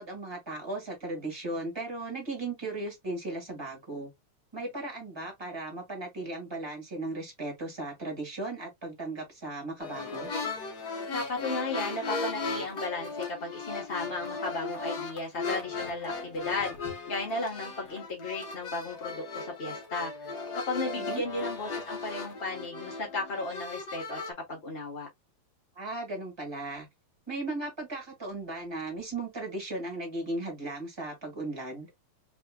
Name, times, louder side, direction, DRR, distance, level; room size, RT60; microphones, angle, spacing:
voice 1, 0.0-4.1 4.5-10.3 21.0-21.2 25.7-26.9 27.3-31.9, right 2 dB, 10° right, 1.5 m, -36 dB
sound 1, 9.8-24.3, left 3 dB, 85° left, 0.8 m, -37 dB
voice 2, 11.1-16.7 17.1-20.1 20.7-24.2 24.5-25.1, left 2 dB, 55° left, 0.6 m, -35 dB
4.2 x 3.5 x 2.3 m
omnidirectional pair, 3.5 m